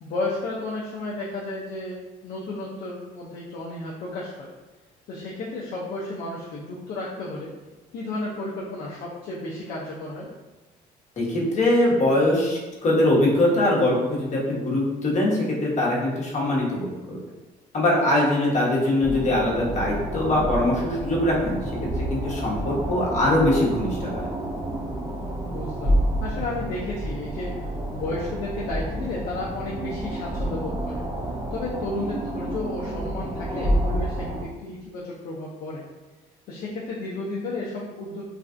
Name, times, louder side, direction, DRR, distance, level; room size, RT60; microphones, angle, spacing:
voice 1, 0.0-4.5 5.1-7.5 7.9-10.3 18.4-18.5 25.5-27.5 27.9-31.0 31.5-35.8 36.5-38.2, left 2 dB, 60° left, -5 dB, 0.5 m, -33 dB
voice 2, 11.2-17.2 17.7-21.6 22.1-24.2, left 1 dB, 45° left, -4 dB, 1.0 m, -22 dB
sound 1, 19.0-34.4, right 1 dB, 20° right, 0.4 m, -29 dB
3.2 x 2.3 x 2.5 m, 1.2 s
cardioid pair, 110°, 17 cm